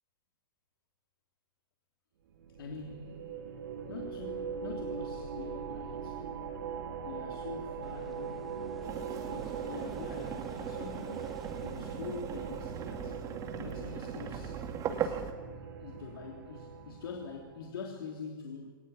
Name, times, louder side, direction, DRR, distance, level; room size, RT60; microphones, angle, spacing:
sound 1, 2.3-17.7, right 6 dB, 70° right, 4.6 m, -41 dB
voice 1, 2.6-3.3 3.9-6.2 7.0-8.5 9.3-13.2 13.6-15.2 15.8-18.7, left 5 dB, 75° left, 3.2 m, -45 dB
sound 2, 7.8-14.4, equal, ahead, 2.9 m, -56 dB
sound 3, 8.8-15.3, right 8 dB, 30° right, 2.3 m, -39 dB
23.0 x 19.0 x 9.7 m
hypercardioid pair, 135°, 12 cm